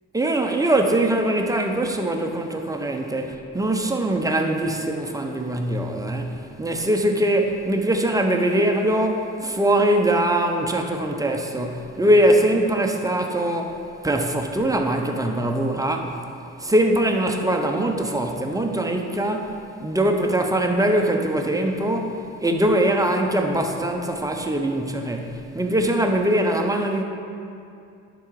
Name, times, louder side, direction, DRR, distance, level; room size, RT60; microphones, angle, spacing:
voice 1, 0.1-16.1 16.6-19.5 19.8-27.0, right 1 dB, 10° right, 3 dB, 0.7 m, -22 dB
10.5 x 3.9 x 4.7 m, 2.5 s
cardioid pair, 90°, 30 cm